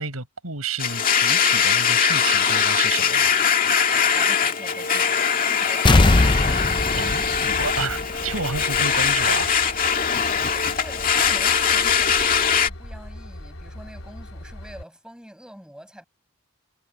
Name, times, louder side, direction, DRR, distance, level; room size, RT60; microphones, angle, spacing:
voice 1, 0.0-3.3 6.9-9.5, right 4 dB, 85° right, 7.4 m, -30 dB
Domestic sounds home sounds, 0.8-12.7, left 7 dB, 40° left, 2.1 m, -21 dB
voice 2, 4.1-6.5 10.5-16.1, equal, 5° right, 5.8 m, -45 dB
sound 1, 5.8-8.5 8.8-8.9, left 2 dB, 20° left, 0.5 m, -20 dB
Train / Engine, 6.1-14.8, left 1 dB, 80° left, 4.2 m, -40 dB
head